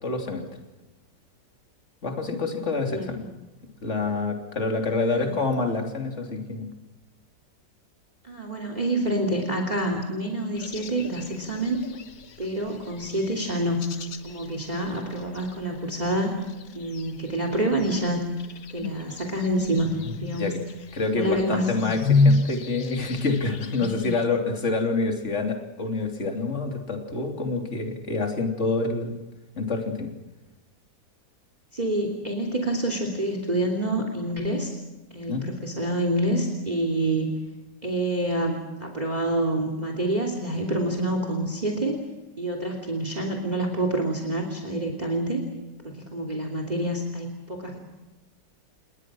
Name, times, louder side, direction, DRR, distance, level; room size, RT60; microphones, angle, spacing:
voice 1, 0.0-0.4 2.0-3.2 3.8-6.7 20.4-20.6 20.9-29.2 29.6-30.1 35.3-35.5, left 3 dB, 40° left, 3 dB, 3.4 m, -27 dB
voice 2, 4.9-5.3 8.2-11.8 12.4-14.0 14.2-16.4 16.7-18.3 18.7-19.9 20.2-20.5 21.1-21.7 31.7-34.8 35.1-37.4 37.8-42.0 42.4-45.4 45.8-47.8, right 1 dB, 25° right, 4 dB, 3.1 m, -27 dB
sound 1, 10.6-24.2, left 3 dB, 60° left, 1.8 m, -30 dB
28.5 x 21.0 x 6.2 m, 1.1 s
omnidirectional pair, 1.9 m